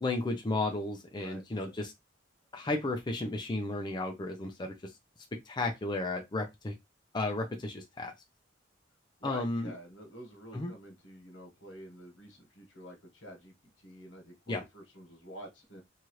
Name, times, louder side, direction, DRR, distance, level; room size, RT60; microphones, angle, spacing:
voice 1, 0.0-1.9 2.5-4.7 5.5-6.7 7.1-8.1 9.2-9.7 10.5-10.7 14.5-14.6, left 2 dB, 25° left, 0.5 m, -33 dB
voice 2, 1.1-1.7 9.2-13.5 13.8-15.8, equal, 80° left, 1.3 m, -48 dB
2.8 x 2.4 x 3.1 m
head